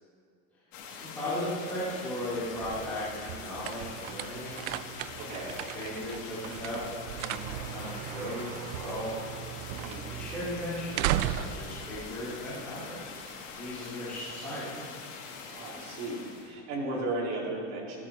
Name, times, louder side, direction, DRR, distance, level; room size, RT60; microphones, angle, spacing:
sound 1, 0.7-16.5, left 5 dB, 75° left, 3.6 m, -44 dB
voice 1, 0.9-4.6 5.3-6.8 7.1-9.4 10.1-13.0 13.4-15.0, left 1 dB, 5° left, -14 dB, 4.8 m, -37 dB
sound 2, 2.3-13.0, right 12 dB, 75° right, 0.6 m, -37 dB
voice 2, 5.2-5.6 9.7-10.1 15.5-18.1, right 2 dB, 40° right, -4 dB, 4.1 m, -35 dB
15.5 x 15.0 x 4.5 m, 2.2 s
supercardioid pair, 165°, 38 cm